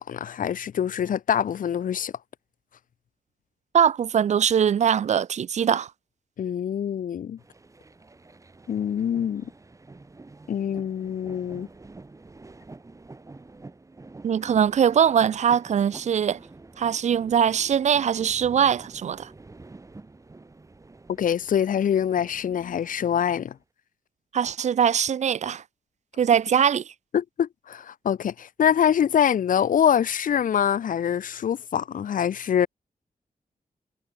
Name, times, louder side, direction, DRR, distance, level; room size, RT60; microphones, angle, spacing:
voice 1, 0.0-2.1 6.4-7.4 8.7-9.5 10.5-11.7 21.2-23.6 27.1-32.7, left 9 dB, 70° left, 0.5 m, -24 dB
voice 2, 3.7-5.9 14.2-16.4 16.8-19.3 24.3-25.6 26.2-26.8, right 8 dB, 55° right, 0.4 m, -22 dB
sound 1, 7.4-23.6, right 3 dB, 20° right, 1.8 m, -48 dB
wide cardioid pair, 160°, 14 cm